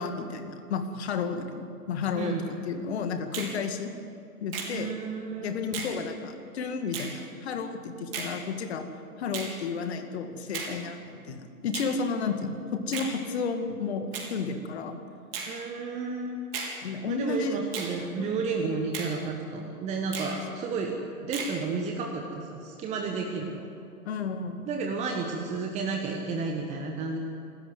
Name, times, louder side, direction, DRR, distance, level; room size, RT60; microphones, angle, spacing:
voice 1, 0.0-2.4 2.7-3.9 4.4-4.9 5.4-8.8 9.2-15.0 16.8-17.6 18.2-18.3 24.1-24.6, left 5 dB, 45° left, 7 dB, 2.1 m, -32 dB
voice 2, 2.1-2.5 4.7-5.6 15.5-16.4 17.1-23.7 24.7-27.2, right 4 dB, 15° right, 2 dB, 1.4 m, -32 dB
Finger snapping, 3.3-3.6 4.5-4.7 5.7-6.0 6.9-7.1 8.1-8.3 9.3-9.5 10.5-10.8 11.7-11.9 12.9-13.1 14.1-14.3 15.3-15.5 16.5-16.8 17.7-17.9 18.9-19.1 20.1-20.4 21.3-21.6, right 5 dB, 40° right, 4.1 m, -35 dB
27.0 x 13.5 x 8.1 m, 2.5 s
figure-of-eight pair, 120°, 45 cm